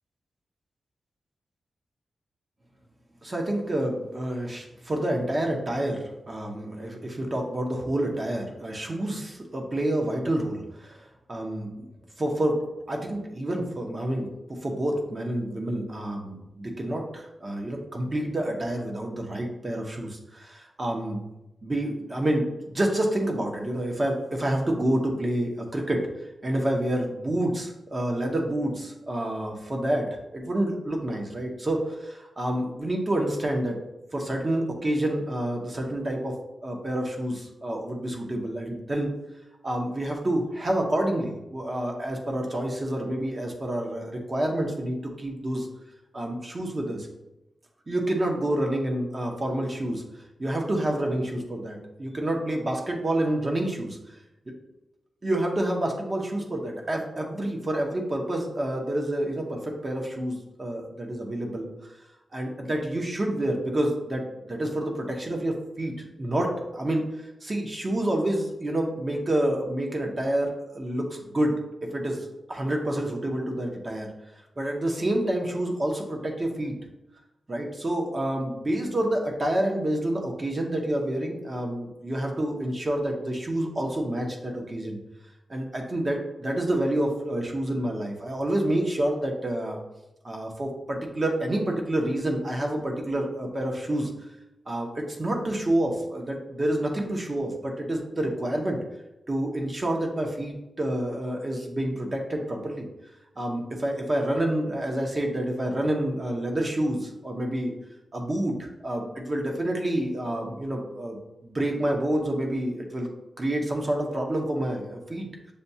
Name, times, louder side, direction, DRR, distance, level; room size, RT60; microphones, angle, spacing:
voice 1, 3.2-11.8 12.2-21.2 21.6-26.1 26.4-33.8 34.1-36.4 36.6-39.1 39.6-45.7 46.1-47.1 47.9-50.0 50.4-54.0 55.2-61.7 62.3-67.0 67.4-71.6 71.8-74.1 74.6-76.8 77.5-85.0 85.5-89.8 90.2-94.1 94.7-98.8 99.3-102.9 103.4-107.8 108.1-113.1 113.4-115.5, right 1 dB, 35° right, 1 dB, 0.8 m, -28 dB
6.7 x 2.3 x 2.7 m, 0.93 s
wide cardioid pair, 100°, 0 cm